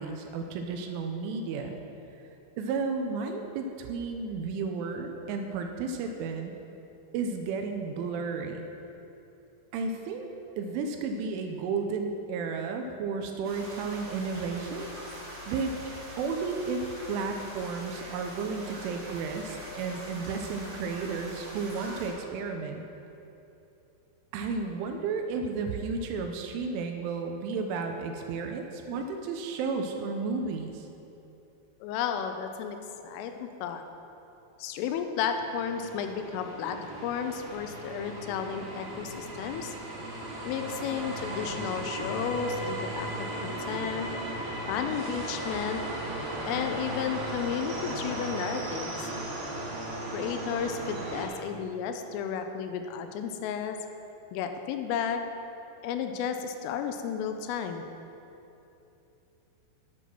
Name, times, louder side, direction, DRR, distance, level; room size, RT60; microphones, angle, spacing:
voice 1, 0.0-1.8 2.6-6.5 7.1-8.7 9.7-10.3 10.6-14.9 15.5-15.7 16.2-22.8 24.3-30.9, right 4 dB, 85° right, 4 dB, 3.0 m, -33 dB
sound 1, 13.4-22.1, equal, 40° right, 2.6 m, -43 dB
voice 2, 31.8-32.8 33.0-33.8 34.6-36.8 37.0-39.7 40.4-44.1 44.7-45.8 46.5-49.1 50.1-53.8 54.3-55.2 55.8-57.8, left 7 dB, 85° left, 6 dB, 3.2 m, -33 dB
sound 2, 35.2-51.3, right 1 dB, 60° right, 3.4 m, -36 dB
11.0 x 7.3 x 6.1 m, 2.9 s
omnidirectional pair, 5.8 m